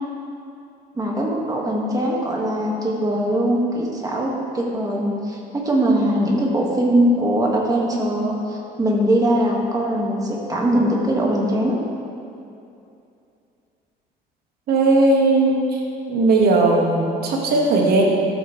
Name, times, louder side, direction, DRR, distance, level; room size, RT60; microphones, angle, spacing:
voice 1, 0.9-11.8, right 1 dB, 20° right, -2 dB, 1.7 m, -21 dB
voice 2, 14.7-15.8 16.1-18.1, right 2 dB, 65° right, -1 dB, 1.7 m, -17 dB
13.0 x 8.2 x 3.2 m, 2.6 s
cardioid pair, 110°, 17 cm